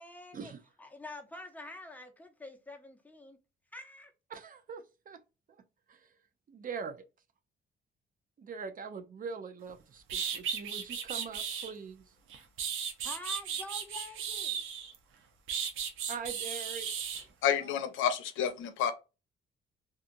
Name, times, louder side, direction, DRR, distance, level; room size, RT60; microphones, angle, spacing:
voice 1, 0.0-0.5 0.8-3.4 3.7-4.1 13.0-14.6, left 1 dB, 10° left, 0.7 m, -46 dB
voice 2, 4.3-5.2 5.5-5.6 5.9-6.1 6.5-7.0 8.4-12.0 16.1-16.9 17.6-17.8, right 5 dB, 45° right, 0.5 m, -42 dB
sound 1, 9.7-9.8 10.1-11.7 12.3-14.9 15.5-17.2, right 7 dB, 85° right, 0.6 m, -35 dB
voice 3, 17.4-18.9, left 9 dB, 90° left, 0.5 m, -29 dB
2.8 x 2.4 x 2.5 m
cardioid pair, 90°, 20 cm